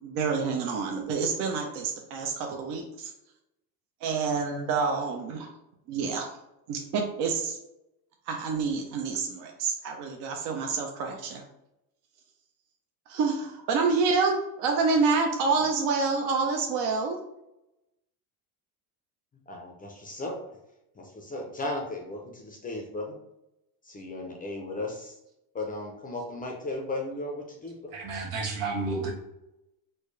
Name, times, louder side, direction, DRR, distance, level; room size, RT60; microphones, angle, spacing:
voice 1, 0.0-3.1 4.0-5.5 5.9-6.3 6.7-7.6 8.3-11.4 13.1-17.2, right 4 dB, 55° right, 2 dB, 0.7 m, -28 dB
voice 2, 19.5-20.6 21.0-23.2 23.8-25.2 25.5-27.9, left 2 dB, 20° left, 1 dB, 0.5 m, -36 dB
voice 3, 27.9-29.1, right 3 dB, 80° right, -2 dB, 1.4 m, -31 dB
4.2 x 2.2 x 3.1 m, 0.88 s
supercardioid pair, 115°, 47 cm